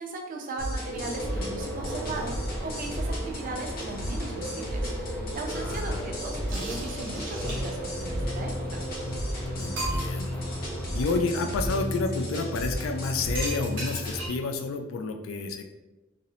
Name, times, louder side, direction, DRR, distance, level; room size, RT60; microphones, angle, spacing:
voice 1, 0.0-8.9, right 3 dB, 45° right, 1 dB, 0.4 m, -37 dB
sound 1, 0.6-14.3, equal, 45° left, 0.7 m, -33 dB
sound 2, 0.9-11.2, equal, 10° left, 0.6 m, -37 dB
voice 2, 5.5-6.1 9.6-10.4 10.9-15.6, left 3 dB, 80° left, 5 dB, 0.3 m, -30 dB
sound 3, 6.5-7.9 8.9-9.0 9.3-9.4 9.8-10.3 12.0-12.3 13.3-14.5, right 1 dB, 65° right, 0.9 m, -37 dB
2.6 x 2.0 x 2.7 m, 1.1 s
head